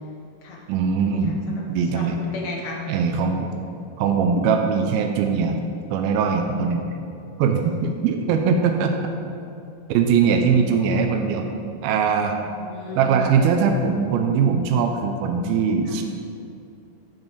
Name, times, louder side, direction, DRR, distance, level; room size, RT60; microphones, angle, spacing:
voice 1, 0.7-1.4 1.7-2.2 2.9-3.5 4.0-5.6 5.9-6.8 7.4-8.9 9.9-11.5 11.8-12.4 13.0-16.0, right 6 dB, 90° right, 4 dB, 2.6 m, -21 dB
voice 2, 1.5-2.8 12.6-13.3, left 1 dB, 60° left, -1 dB, 2.2 m, -34 dB
12.0 x 9.0 x 4.1 m, 2.6 s
omnidirectional pair, 4.2 m